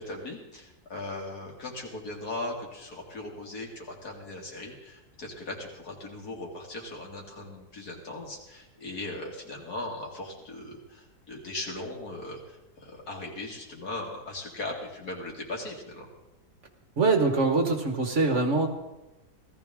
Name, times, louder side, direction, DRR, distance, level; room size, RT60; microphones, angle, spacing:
voice 1, 0.0-16.1, left 2 dB, 75° left, -1 dB, 3.0 m, -38 dB
voice 2, 17.0-18.7, right 3 dB, 50° right, 4 dB, 1.7 m, -23 dB
17.0 x 14.0 x 3.7 m, 0.99 s
omnidirectional pair, 1.7 m